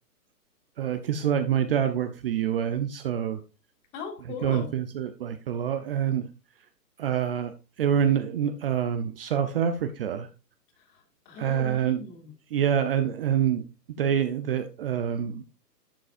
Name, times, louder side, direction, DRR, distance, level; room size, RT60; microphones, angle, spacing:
voice 1, 0.8-3.4 4.4-6.3 7.0-7.5 7.8-10.3 11.4-12.0 12.5-13.6 14.0-15.4, right 9 dB, 35° right, 9 dB, 0.6 m, -26 dB
voice 2, 3.9-4.7 10.8-12.3, left 4 dB, 30° left, 4 dB, 2.5 m, -39 dB
11.5 x 7.4 x 2.5 m, 0.31 s
hypercardioid pair, 145°, 48 cm